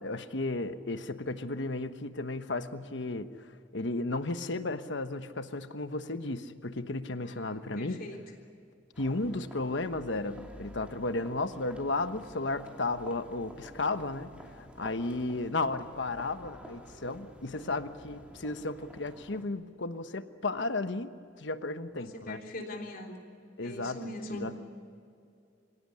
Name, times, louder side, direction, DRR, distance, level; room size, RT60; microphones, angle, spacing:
voice 1, 0.0-3.3 3.7-8.0 9.0-14.3 14.6-22.4 23.6-24.6, left 2 dB, 65° left, 10 dB, 1.2 m, -34 dB
voice 2, 7.2-8.2 22.0-23.2 23.6-24.5, left 1 dB, 50° left, 1 dB, 3.6 m, -41 dB
sound 1, 8.9-19.4, equal, 5° right, 2.7 m, -50 dB
25.5 x 17.0 x 9.9 m, 2.5 s
head